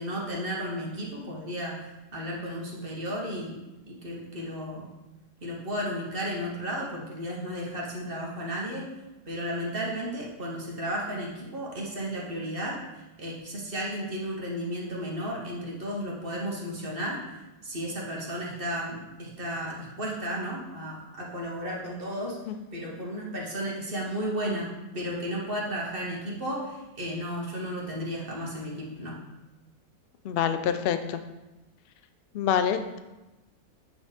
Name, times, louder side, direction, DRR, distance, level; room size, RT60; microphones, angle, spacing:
voice 1, 0.0-4.9 5.4-8.9 9.3-17.2 17.6-22.4 22.7-29.2, equal, 40° right, -3 dB, 1.4 m, -34 dB
voice 2, 30.2-31.2 32.3-33.0, left 8 dB, 75° left, 9 dB, 0.5 m, -26 dB
8.5 x 4.4 x 3.3 m, 1.0 s
omnidirectional pair, 1.5 m